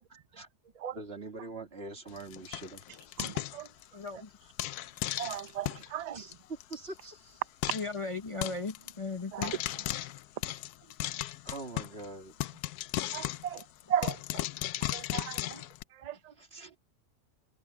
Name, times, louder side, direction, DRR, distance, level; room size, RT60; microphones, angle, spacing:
voice 1, 0.9-2.8 5.6-5.8 6.1-7.4 11.4-12.3 16.4-16.7, right 2 dB, 40° right, 2.8 m, -44 dB
Frying (food), 2.1-4.1 4.6-5.9 6.3-6.4 6.6-6.8 7.0-7.1 7.6-8.0 8.4-8.9 9.4-12.1 12.4-15.8, left 15 dB, 80° left, 1.1 m, -36 dB
voice 2, 3.2-3.7 5.2-6.2 9.3-9.8 13.1-14.4 14.9-15.6 16.0-16.3, right 9 dB, 55° right, 0.4 m, -36 dB
voice 3, 3.9-4.3 7.7-9.5, left 3 dB, 25° left, 0.8 m, -36 dB
omnidirectional pair, 1.7 m